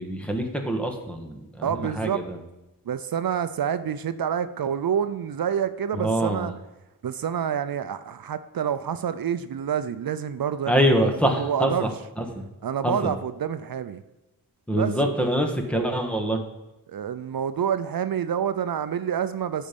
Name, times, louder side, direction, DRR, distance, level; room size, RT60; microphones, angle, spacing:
voice 1, 0.0-2.4 5.9-6.5 10.7-11.9 12.2-12.4 12.8-13.1 14.7-16.4, equal, 5° left, 3 dB, 1.5 m, -25 dB
voice 2, 1.6-2.2 2.9-6.5 7.0-10.9 11.3-11.9 12.6-14.0 14.7-15.2 16.9-19.7, right 8 dB, 70° right, 12 dB, 0.6 m, -28 dB
13.5 x 5.5 x 5.3 m, 1.0 s
wide cardioid pair, 125°, 36 cm